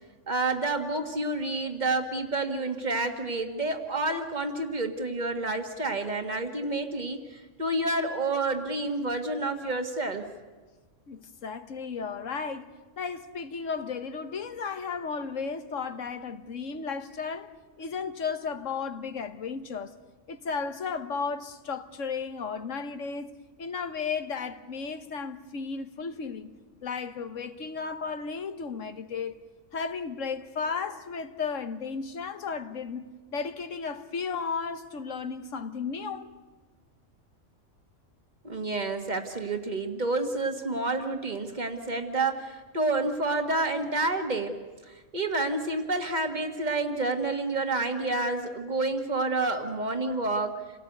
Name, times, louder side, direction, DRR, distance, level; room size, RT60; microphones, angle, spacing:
voice 1, 0.3-10.2 38.4-44.6 44.9-50.6, right 2 dB, 35° right, 2.0 m, -29 dB
voice 2, 11.1-12.7 13.0-17.5 17.8-19.9 20.3-23.3 23.6-26.5 26.8-29.3 29.7-36.3, left 5 dB, 90° left, 1.6 m, -34 dB
28.5 x 18.0 x 8.1 m
omnidirectional pair, 1.3 m